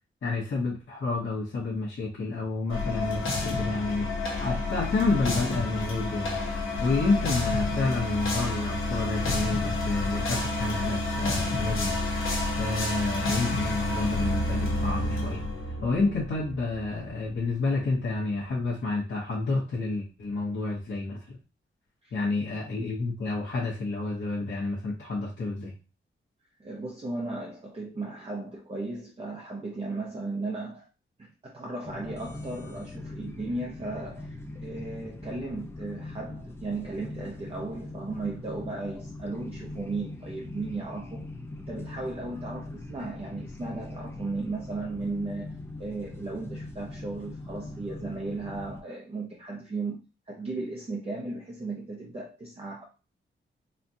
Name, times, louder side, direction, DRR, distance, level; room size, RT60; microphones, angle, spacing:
voice 1, 0.2-4.1 4.4-6.4 6.8-12.0 12.6-15.4 15.8-21.4 22.1-25.7, left 3 dB, 65° left, -6 dB, 0.9 m, -29 dB
sound 1, 2.7-17.4, left 2 dB, 90° left, 0.9 m, -29 dB
voice 2, 26.6-30.9 31.2-41.3 41.7-50.0 50.3-52.8, right 3 dB, 30° right, -2 dB, 0.6 m, -36 dB
sound 2, 31.8-48.8, left 2 dB, 10° left, 0.4 m, -41 dB
4.1 x 2.2 x 2.7 m, 0.31 s
wide cardioid pair, 115°, 21 cm